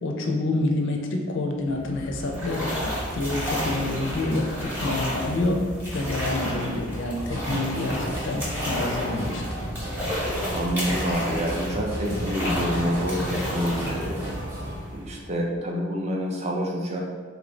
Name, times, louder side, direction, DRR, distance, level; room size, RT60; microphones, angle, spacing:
voice 1, 0.0-5.6 5.9-9.4, left 2 dB, 60° left, 2 dB, 0.5 m, -27 dB
sound 1, 1.6-15.4, equal, 10° right, 0.9 m, -31 dB
sound 2, 7.2-14.8, equal, 85° right, 1.2 m, -34 dB
voice 2, 10.5-14.2 14.9-17.0, equal, 35° right, 0 dB, 0.5 m, -27 dB
3.3 x 2.5 x 3.1 m, 1.5 s
head